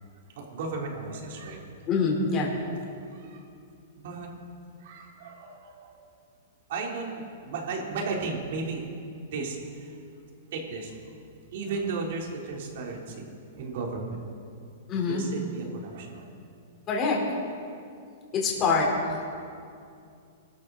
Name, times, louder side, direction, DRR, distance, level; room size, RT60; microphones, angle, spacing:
voice 1, 0.3-1.6 3.1-3.5 4.0-4.3 4.8-6.0 6.7-8.9 9.3-10.0 10.5-10.9 11.5-14.2 15.0-16.3, right 4 dB, 60° right, -1 dB, 3.9 m, -35 dB
voice 2, 1.9-2.5 14.9-15.3 16.9-17.2 18.3-19.3, left 4 dB, 30° left, -2 dB, 4.5 m, -25 dB
24.0 x 13.0 x 4.3 m, 2.4 s
hypercardioid pair, 140°, 0 cm